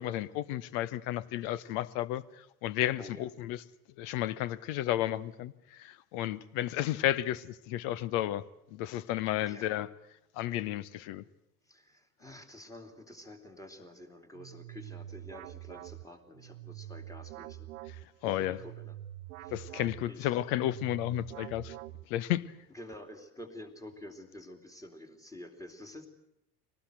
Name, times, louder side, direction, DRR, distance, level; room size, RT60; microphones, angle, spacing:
voice 1, 0.0-3.6 4.0-9.9 10.3-11.2 18.0-18.6 19.5-21.8 22.1-22.5, left 13 dB, 55° left, 0.9 m, -33 dB
voice 2, 9.4-9.7 11.6-17.7 18.2-18.9 19.4-19.6 20.1-20.3 22.7-26.1, left 1 dB, 5° left, 2.8 m, -49 dB
sound 1, 14.3-22.4, right 15 dB, 70° right, 0.7 m, -46 dB
24.0 x 18.5 x 7.9 m
figure-of-eight pair, 65°, 46 cm